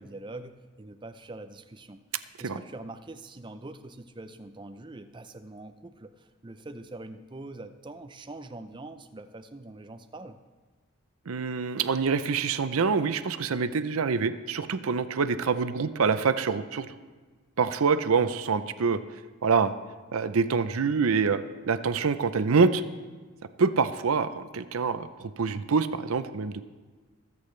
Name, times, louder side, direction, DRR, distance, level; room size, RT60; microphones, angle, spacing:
voice 1, 0.0-2.0 2.4-10.4, right 2 dB, 20° right, 9 dB, 0.5 m, -43 dB
voice 2, 11.3-16.9 17.6-19.0 19.4-19.7 20.1-22.8 23.6-26.6, right 5 dB, 75° right, 12 dB, 0.6 m, -26 dB
25.0 x 8.5 x 3.2 m, 1.4 s
head